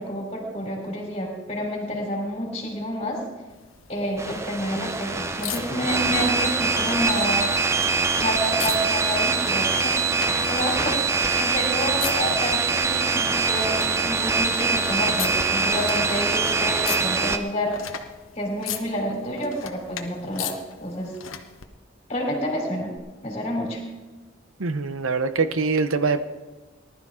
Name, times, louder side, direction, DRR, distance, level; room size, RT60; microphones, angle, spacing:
voice 1, 0.0-3.2 3.9-7.5 8.2-17.8 18.3-20.5 20.8-21.2 22.1-22.9 23.2-23.8, equal, 30° left, 0 dB, 3.6 m, -29 dB
sound 1, 3.5-21.7 23.0-23.1, left 9 dB, 80° left, 1.0 m, -39 dB
sound 2, 4.2-17.4, right 4 dB, 15° right, 0.5 m, -23 dB
voice 2, 24.6-26.2, right 4 dB, 85° right, 12 dB, 0.7 m, -23 dB
19.5 x 12.0 x 3.7 m, 1.2 s
head